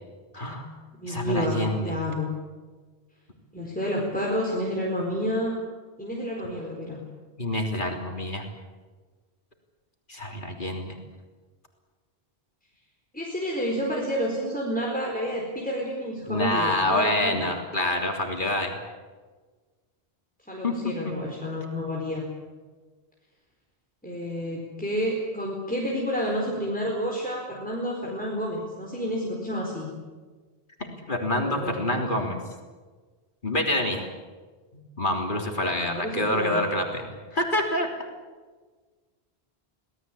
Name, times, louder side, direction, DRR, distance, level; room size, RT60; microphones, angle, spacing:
voice 1, 0.3-0.7 1.0-2.0 7.4-8.5 10.1-11.0 16.3-18.8 20.6-21.1 31.1-32.4 33.4-34.1 35.0-37.1 37.3-37.9, left 1 dB, 50° left, 2 dB, 3.5 m, -27 dB
voice 2, 1.0-2.3 3.5-5.5 6.0-7.0 13.1-17.5 20.5-22.2 24.0-29.9 31.3-32.0 35.8-36.6, equal, 10° left, -2 dB, 4.4 m, -30 dB
25.5 x 18.5 x 8.6 m, 1.4 s
omnidirectional pair, 1.1 m